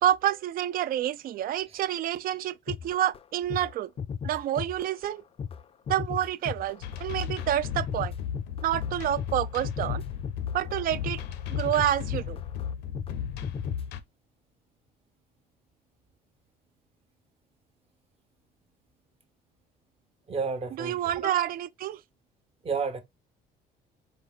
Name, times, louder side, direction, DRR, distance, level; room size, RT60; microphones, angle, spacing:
voice 1, 0.0-3.9 4.2-5.2 5.9-8.1 8.6-10.0 10.5-11.2 11.5-12.4 20.7-22.0, right 12 dB, 60° right, 0.4 m, -28 dB
sound 1, 2.7-3.2 3.5-3.7 4.0-5.1 5.4-13.2 13.4-13.9, left 7 dB, 35° left, 0.4 m, -36 dB
sound 2, 6.8-14.0, left 8 dB, 85° left, 0.7 m, -35 dB
voice 2, 20.3-21.0 21.2-21.5 22.6-23.0, right 5 dB, 35° right, 0.9 m, -31 dB
4.5 x 2.4 x 3.5 m
cardioid pair, 110°, 17 cm